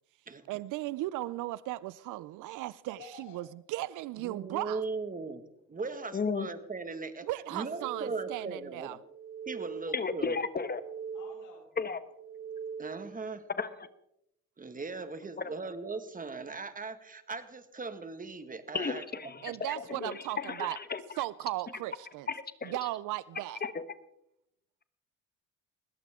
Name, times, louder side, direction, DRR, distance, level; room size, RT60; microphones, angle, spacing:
voice 1, 0.5-4.8 7.2-9.0 19.4-20.8 21.2-22.3 22.6-23.6, right 17 dB, 85° right, 0.5 m, -36 dB
voice 2, 2.9-3.4 5.8-6.0 9.5-10.0 11.1-11.7 21.9-22.1 23.3-23.6, left 3 dB, 85° left, 7.3 m, -53 dB
voice 3, 4.2-5.4 5.7-7.3 7.5-9.0 9.5-10.4 12.8-13.4 14.6-19.5, right 4 dB, 25° right, 1.8 m, -39 dB
voice 4, 6.1-6.5 9.9-10.8 11.8-12.0 13.5-13.7 18.7-21.0 22.3-22.8 23.6-23.8, left 5 dB, 30° left, 1.3 m, -34 dB
sound 1, 7.5-8.7 9.0-10.2 10.5-11.7 12.1-13.2, right 6 dB, 45° right, 1.4 m, -42 dB
21.0 x 17.0 x 3.7 m
cardioid pair, 90°, 30 cm